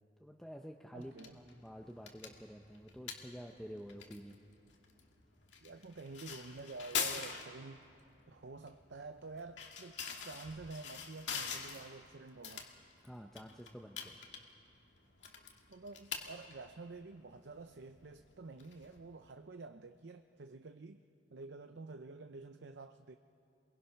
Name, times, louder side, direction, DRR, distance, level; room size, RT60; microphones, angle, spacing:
voice 1, 0.2-4.4 13.0-14.2, equal, ahead, 2 dB, 0.8 m, -49 dB
voice 2, 0.9-1.4 5.6-7.9 8.3-12.7 15.7-21.0 21.3-23.1, right 3 dB, 65° right, 8 dB, 0.6 m, -49 dB
sound 1, 1.0-19.4, left 6 dB, 75° left, 2.1 m, -46 dB
28.0 x 22.5 x 5.8 m, 2.6 s
head